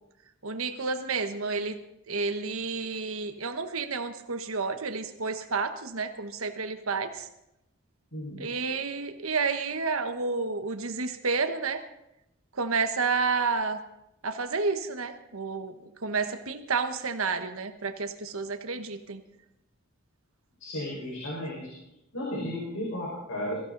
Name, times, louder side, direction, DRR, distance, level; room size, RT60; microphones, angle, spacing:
voice 1, 0.4-1.8 2.1-7.3 8.4-11.8 12.5-13.8 14.2-15.7 16.0-19.2, right 4 dB, 85° right, 8 dB, 1.3 m, -30 dB
voice 2, 8.1-8.5 20.6-21.7 22.1-23.6, left 1 dB, 75° left, -4 dB, 5.4 m, -34 dB
23.0 x 15.5 x 4.0 m, 0.86 s
head